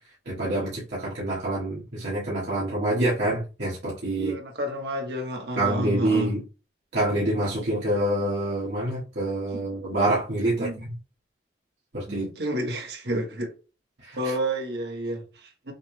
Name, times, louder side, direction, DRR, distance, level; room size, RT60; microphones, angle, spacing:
voice 1, 0.2-4.3 5.6-6.4 6.9-10.9 11.9-12.3 14.0-14.2, right 1 dB, 85° right, 1.6 m, -26 dB
voice 2, 4.1-6.3 9.5-9.7 10.6-10.8 12.1-13.5 14.1-15.7, equal, 70° right, 1.2 m, -30 dB
6.4 x 2.2 x 3.3 m
head